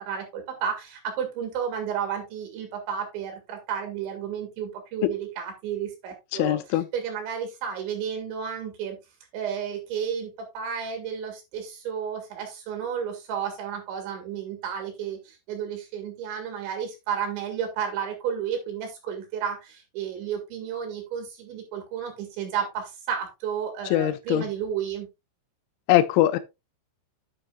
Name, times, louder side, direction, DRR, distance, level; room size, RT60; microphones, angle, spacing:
voice 1, 0.0-6.6 6.9-9.0 9.3-25.1, right 8 dB, 75° right, 4.0 m, -32 dB
voice 2, 6.4-6.9 23.9-24.5 25.9-26.4, left 14 dB, 85° left, 3.1 m, -21 dB
9.4 x 8.6 x 2.3 m
omnidirectional pair, 5.3 m